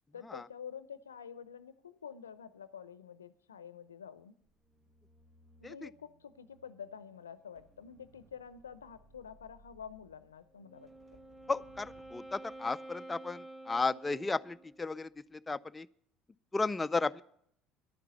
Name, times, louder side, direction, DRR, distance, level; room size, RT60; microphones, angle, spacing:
voice 1, 0.1-4.3 5.6-10.9, left 7 dB, 90° left, 15 dB, 0.6 m, -48 dB
sound 1, 4.4-14.7 15.1-15.4, right 2 dB, 40° right, 1.3 m, -65 dB
Wind instrument woodwind instrument, 10.5-14.8, right 1 dB, 10° right, 2.2 m, -50 dB
voice 2, 11.5-15.9 16.5-17.2, left 3 dB, 20° left, 12 dB, 0.4 m, -34 dB
11.0 x 9.5 x 8.2 m, 0.70 s
hypercardioid pair, 65°, 0 cm